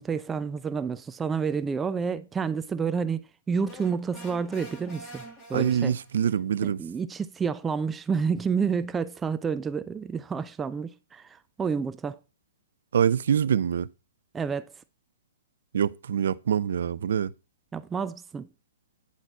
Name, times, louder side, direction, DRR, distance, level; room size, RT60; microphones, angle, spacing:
voice 1, 0.0-3.2 3.5-5.2 5.5-6.0 6.6-12.2 14.3-14.7 17.7-18.5, right 5 dB, 15° right, 0.6 m, -29 dB
sound 1, 3.6-6.3, right 1 dB, 25° left, 3.6 m, -46 dB
voice 2, 5.5-6.8 12.9-13.9 15.7-17.3, right 8 dB, 70° right, 0.5 m, -25 dB
9.7 x 4.2 x 7.3 m
hypercardioid pair, 120°, 0 cm